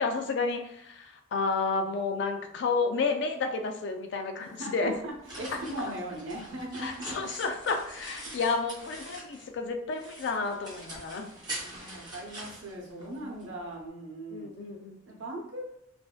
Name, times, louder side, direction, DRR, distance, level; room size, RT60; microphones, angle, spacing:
voice 1, 0.0-4.9 6.8-11.4 14.3-15.0, left 4 dB, 60° left, 5 dB, 0.3 m, -31 dB
voice 2, 4.4-7.2 11.6-14.5 15.1-15.6, right 1 dB, 80° right, -1 dB, 0.6 m, -39 dB
sound 1, 4.8-9.6 9.9-13.5, right 1 dB, 20° right, 0.7 m, -44 dB
2.5 x 2.1 x 2.3 m, 0.76 s
head